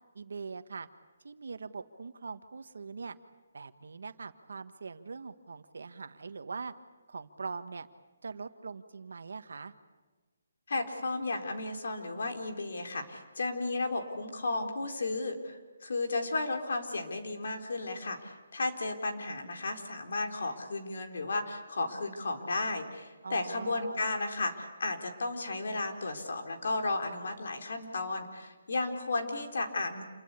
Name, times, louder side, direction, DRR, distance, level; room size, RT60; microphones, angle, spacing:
voice 1, 0.1-0.9 1.2-3.2 3.5-6.7 7.1-7.9 8.2-9.7 23.2-24.0, right 4 dB, 70° right, 10 dB, 1.6 m, -42 dB
voice 2, 10.7-30.0, left 2 dB, 60° left, 4 dB, 3.9 m, -34 dB
28.0 x 22.0 x 8.4 m, 1.2 s
hypercardioid pair, 175°, 0 cm